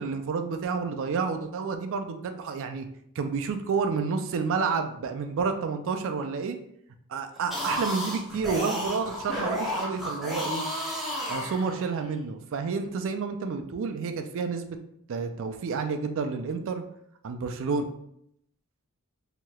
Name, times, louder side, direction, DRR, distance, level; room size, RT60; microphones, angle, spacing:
voice 1, 0.0-2.9 3.2-6.6 7.1-10.7 11.3-14.8 15.1-16.8 17.2-17.8, right 5 dB, 60° right, 7 dB, 0.4 m, -30 dB
sound 1, 7.4-12.1, equal, ahead, 0.7 m, -32 dB
3.1 x 2.8 x 2.2 m, 0.74 s
head